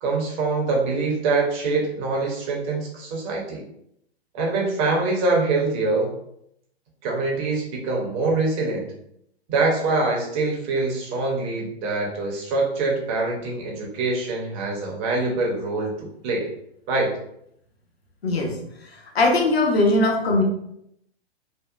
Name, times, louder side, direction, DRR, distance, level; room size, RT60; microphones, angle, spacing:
voice 1, 0.0-3.6 4.3-6.1 7.0-8.9 9.5-16.5 16.9-17.2, right 3 dB, 20° right, -1 dB, 0.4 m, -24 dB
voice 2, 18.2-18.6 19.1-20.4, left 2 dB, 70° left, 0 dB, 0.8 m, -19 dB
2.7 x 2.1 x 2.3 m, 0.74 s
figure-of-eight pair, 115°, 32 cm